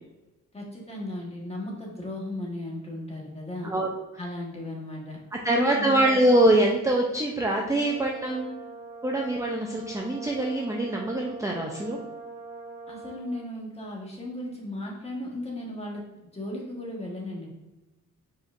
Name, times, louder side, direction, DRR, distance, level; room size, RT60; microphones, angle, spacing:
voice 1, 0.5-3.7 4.2-5.2 5.5-6.2 12.9-16.0 16.3-17.5, left 1 dB, 20° left, -2 dB, 1.4 m, -36 dB
voice 2, 5.4-8.6 9.0-12.0, right 1 dB, 10° right, 0 dB, 0.5 m, -24 dB
Brass instrument, 7.7-13.5, right 4 dB, 80° right, 0.9 m, -43 dB
4.8 x 4.2 x 2.5 m, 1.1 s
cardioid pair, 100°, 32 cm